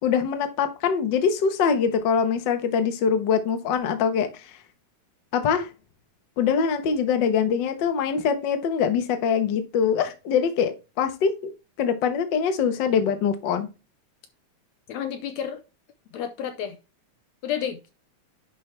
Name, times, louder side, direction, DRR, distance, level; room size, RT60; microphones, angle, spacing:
voice 1, 0.0-4.6 5.3-5.7 6.4-11.5 11.8-13.7, left 6 dB, 50° left, 1.5 m, -23 dB
voice 2, 14.9-15.6 16.1-16.8 17.4-17.9, left 9 dB, 75° left, 1.9 m, -30 dB
10.5 x 5.4 x 3.3 m
omnidirectional pair, 3.4 m